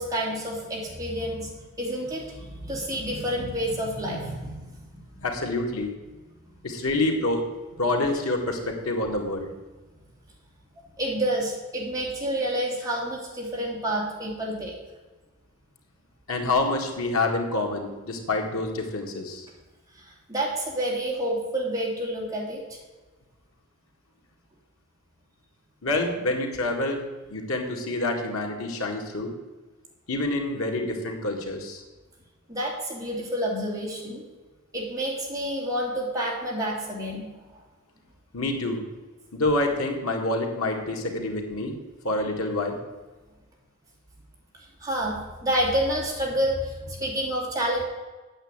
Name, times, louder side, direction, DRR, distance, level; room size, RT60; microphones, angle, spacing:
voice 1, 0.0-1.5 1.8-4.8 5.1-5.2 11.0-14.7 20.0-22.8 32.5-34.2 34.7-37.3 44.8-47.8, right 1 dB, 15° right, -3 dB, 2.7 m, -29 dB
voice 2, 5.2-5.9 6.6-7.4 7.8-9.5 16.3-19.5 25.8-27.1 27.3-29.3 30.1-31.8 38.3-38.8 39.3-41.7 42.0-42.7, left 2 dB, 90° left, 2 dB, 2.1 m, -27 dB
9.0 x 7.6 x 8.9 m, 1.2 s
head